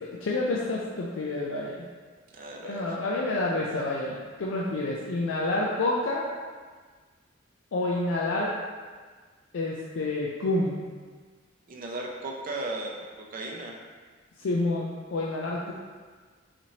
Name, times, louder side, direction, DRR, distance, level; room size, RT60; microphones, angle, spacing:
voice 1, 0.0-1.9 2.6-6.2 7.7-8.5 9.5-10.8 14.4-15.7, left 2 dB, 80° left, -4 dB, 0.4 m, -28 dB
voice 2, 2.3-3.0 11.7-13.7, right 2 dB, 45° right, -1 dB, 0.5 m, -36 dB
4.1 x 3.0 x 2.8 m, 1.5 s
head